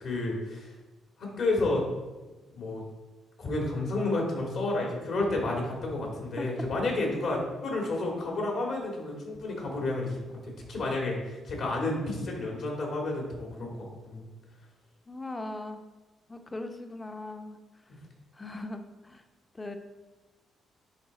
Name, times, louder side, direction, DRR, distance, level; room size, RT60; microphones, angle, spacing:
voice 1, 0.0-0.7 1.2-1.9 2.5-2.8 3.4-10.2 10.4-14.2, left 2 dB, 65° left, -1 dB, 2.4 m, -31 dB
voice 2, 15.1-15.8 16.3-17.6 18.3-19.2 19.5-19.8, left 2 dB, 20° left, 6 dB, 0.8 m, -39 dB
10.0 x 3.5 x 4.1 m, 1.2 s
cardioid pair, 90°, 0 cm